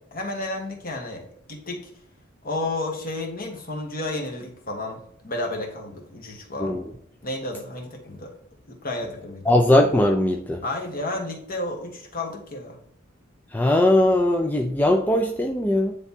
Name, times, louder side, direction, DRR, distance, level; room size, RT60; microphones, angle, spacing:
voice 1, 0.1-1.9 2.4-6.8 7.2-8.3 8.7-9.5 10.6-12.8, left 2 dB, 45° left, 1 dB, 1.4 m, -32 dB
voice 2, 9.5-10.6 13.5-15.9, left 1 dB, 10° left, 2 dB, 0.4 m, -20 dB
9.7 x 3.5 x 2.7 m, 0.67 s
head